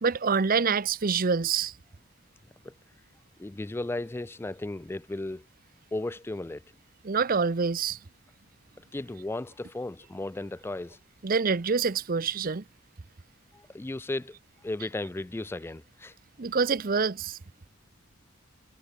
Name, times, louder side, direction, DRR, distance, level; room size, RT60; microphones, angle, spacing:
voice 1, 0.0-1.7 7.0-8.0 11.2-12.6 16.4-17.4, right 5 dB, 45° right, 0.7 m, -26 dB
voice 2, 3.4-5.4 5.9-6.6 8.9-11.0 13.5-14.3 14.6-16.1, left 2 dB, 10° left, 0.3 m, -35 dB
head